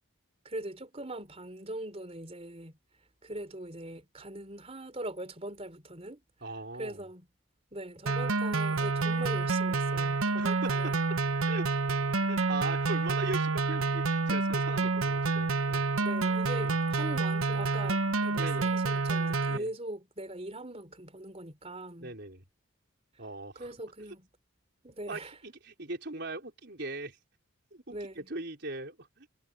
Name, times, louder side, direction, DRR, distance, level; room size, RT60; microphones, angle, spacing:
voice 1, 0.4-2.8 3.2-6.2 6.8-7.3 7.7-11.0 16.0-22.1 23.6-24.3 24.8-25.3 27.9-28.3, right 1 dB, 30° right, 3.7 m, -41 dB
voice 2, 6.4-7.0 10.4-10.9 11.5-11.8 12.3-15.9 16.6-16.8 18.4-18.7 19.5-19.7 22.0-22.4 23.2-23.7 25.1-27.2 27.7-29.3, right 2 dB, 55° right, 4.8 m, -40 dB
sound 1, 8.1-19.6, right 3 dB, 85° right, 1.2 m, -28 dB
head